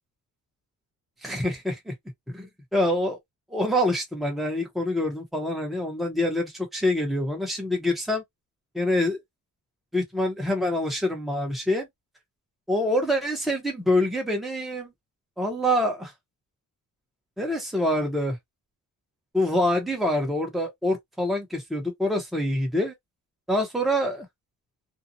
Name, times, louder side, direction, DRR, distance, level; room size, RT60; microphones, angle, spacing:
voice 1, 1.2-1.9 2.3-3.2 3.5-8.2 8.7-9.2 9.9-11.9 12.7-14.9 15.4-16.1 17.4-18.4 19.3-22.9 23.5-24.3, left 1 dB, ahead, 0.9 m, -26 dB
2.6 x 2.4 x 2.7 m
wide cardioid pair, 170°, 33 cm